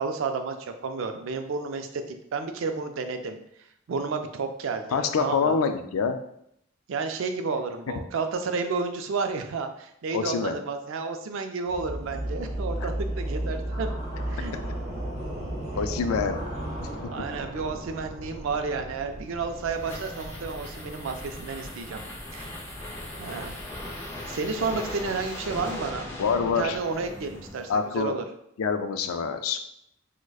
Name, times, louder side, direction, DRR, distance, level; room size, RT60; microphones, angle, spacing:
voice 1, 0.0-3.4 3.9-5.6 6.9-13.9 14.3-14.6 15.8-15.9 17.1-22.0 22.3-22.6 23.2-23.6 24.3-26.1 26.6-28.2, right 4 dB, 65° right, 7 dB, 0.4 m, -31 dB
voice 2, 4.9-6.2 10.1-10.6 12.8-12.9 15.8-16.4 16.8-16.9 26.2-26.8 27.7-28.2 28.6-29.6, left 5 dB, 90° left, 7 dB, 0.4 m, -26 dB
sound 1, 11.7-26.6, right 1 dB, 30° right, 0.8 m, -36 dB
sound 2, 19.2-28.0, left 1 dB, 10° left, 0.5 m, -39 dB
4.6 x 2.1 x 2.3 m, 0.75 s
head